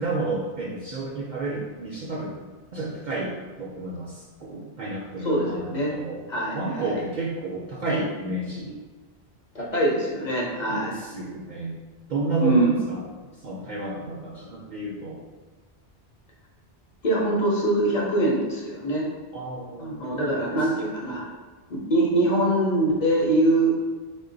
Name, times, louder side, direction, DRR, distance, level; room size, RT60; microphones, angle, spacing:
voice 1, 0.0-2.3 2.7-6.2 6.5-8.7 10.7-11.8 12.1-13.0 13.4-15.2 19.3-20.6, right 2 dB, 55° right, -4 dB, 0.5 m, -31 dB
voice 2, 5.2-5.9 6.3-7.0 9.5-10.9 12.4-12.7 17.0-19.1 19.8-21.2 21.7-23.7, right 1 dB, 45° left, -4 dB, 0.7 m, -23 dB
3.7 x 2.2 x 3.8 m, 1.3 s
omnidirectional pair, 1.2 m